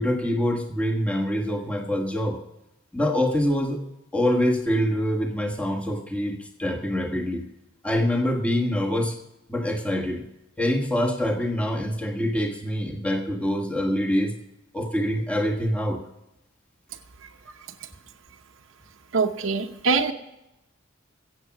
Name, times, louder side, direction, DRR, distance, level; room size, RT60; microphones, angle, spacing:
voice 1, 0.0-2.4 2.9-3.8 4.1-7.4 7.8-9.1 9.5-10.2 10.6-14.3 14.7-16.0, equal, 5° left, 1 dB, 1.4 m, -25 dB
voice 2, 19.1-20.1, right 4 dB, 70° right, 5 dB, 0.8 m, -23 dB
16.0 x 7.4 x 6.0 m, 0.86 s
head